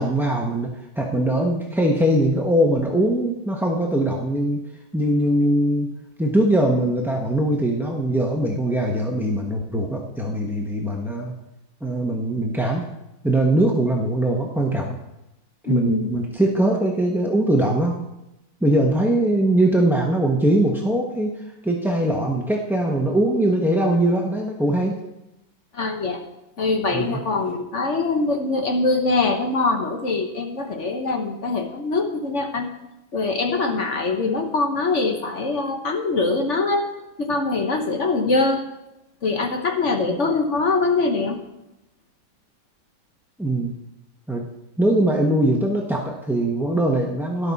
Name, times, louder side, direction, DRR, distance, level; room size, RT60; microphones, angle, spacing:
voice 1, 0.0-4.6 4.9-5.9 6.2-11.3 11.8-12.9 13.2-15.0 15.7-18.0 18.6-21.4 21.6-25.0 26.9-27.2 40.1-40.2 43.4-43.7 44.3-44.4 44.8-47.5, right 1 dB, ahead, -1 dB, 0.5 m, -21 dB
voice 2, 15.6-16.2 25.7-26.2 26.6-32.7 33.1-36.9 37.2-38.6 39.2-41.4, left 3 dB, 45° left, 4 dB, 1.3 m, -23 dB
12.5 x 11.5 x 4.2 m, 0.92 s
omnidirectional pair, 2.1 m